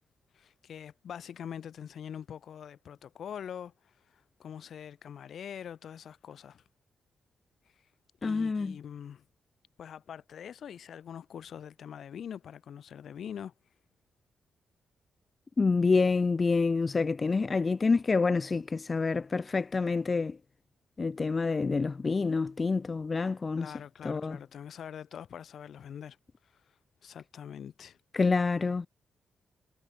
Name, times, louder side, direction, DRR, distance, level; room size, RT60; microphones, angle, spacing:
voice 1, 0.3-3.7 4.1-6.6 8.2-9.2 9.8-13.5 23.6-26.2 27.0-28.0, left 8 dB, 65° left, 2.3 m, -44 dB
voice 2, 8.2-8.8 15.6-20.4 21.0-23.7 24.0-24.4 28.1-28.9, left 4 dB, 30° left, 1.4 m, -27 dB
cardioid pair, 125°, 0 cm